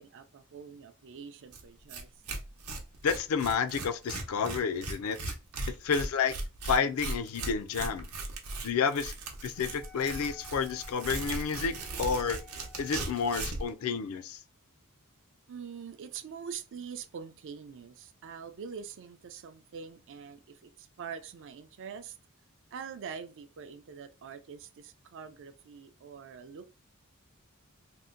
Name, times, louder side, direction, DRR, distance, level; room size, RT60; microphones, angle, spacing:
voice 1, 0.0-2.1 15.5-22.2 22.7-26.7, right 6 dB, 60° right, 0.4 m, -44 dB
Tearing, 1.5-1.6 1.9-2.0 2.3-13.7, right 2 dB, 90° right, 0.8 m, -38 dB
voice 2, 3.0-5.3 5.7-6.4 6.6-8.1 8.6-9.1 9.4-12.4 12.8-14.4, left 6 dB, 70° left, 0.4 m, -30 dB
Wind instrument woodwind instrument, 9.5-13.5, left 5 dB, 5° left, 0.4 m, -55 dB
2.7 x 2.1 x 3.6 m
head